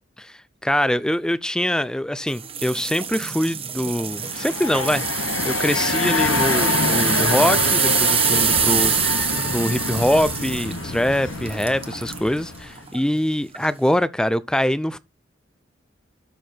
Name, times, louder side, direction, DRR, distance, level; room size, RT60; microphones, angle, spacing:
voice 1, 0.6-9.2 9.5-15.0, left 1 dB, 5° left, 0.4 m, -23 dB
sound 1, 2.4-12.3 12.8-13.0 13.5-13.6, right 8 dB, 30° right, 1.0 m, -25 dB
sound 2, 4.1-12.9, left 4 dB, 90° left, 0.9 m, -26 dB
12.0 x 4.7 x 4.4 m
head